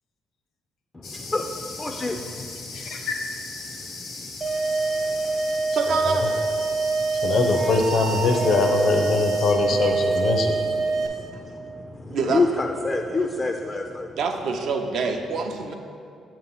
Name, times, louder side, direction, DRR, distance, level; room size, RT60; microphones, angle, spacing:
voice 1, 0.9-3.1 3.6-5.8 6.7-7.3 10.8-14.2, left 3 dB, 20° left, 4 dB, 0.3 m, -30 dB
sound 1, 1.0-9.5, left 3 dB, 85° left, 1.0 m, -39 dB
voice 2, 2.7-3.3 6.1-6.2 7.2-10.6, left 3 dB, 65° left, 4 dB, 0.6 m, -22 dB
sound 2, 4.4-11.1, right 3 dB, 45° right, 0.9 m, -25 dB
voice 3, 5.8-6.3 9.8-9.9 12.1-12.4 14.2-15.7, right 5 dB, 75° right, 4 dB, 0.5 m, -26 dB
7.3 x 2.9 x 5.4 m, 2.5 s
cardioid pair, 90°, 0 cm